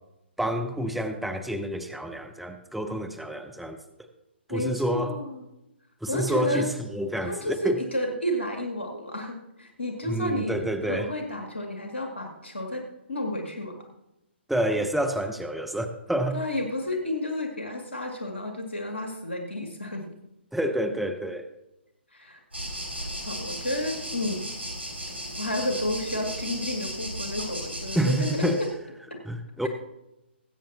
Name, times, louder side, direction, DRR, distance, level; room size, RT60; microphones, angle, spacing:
voice 1, 0.4-3.8 4.5-5.2 6.0-7.8 10.1-11.1 14.5-16.4 20.5-21.5 28.0-28.6 29.2-29.7, right 1 dB, ahead, 6 dB, 0.7 m, -28 dB
voice 2, 4.5-5.4 6.1-6.7 7.2-13.7 16.3-20.1 22.1-22.4 23.2-24.4 25.4-28.7 29.1-29.2, left 1 dB, 80° left, 1 dB, 2.2 m, -31 dB
sound 1, 22.5-28.7, equal, 80° right, 5.3 m, -35 dB
21.0 x 8.8 x 2.8 m, 0.91 s
figure-of-eight pair, 130°, 6 cm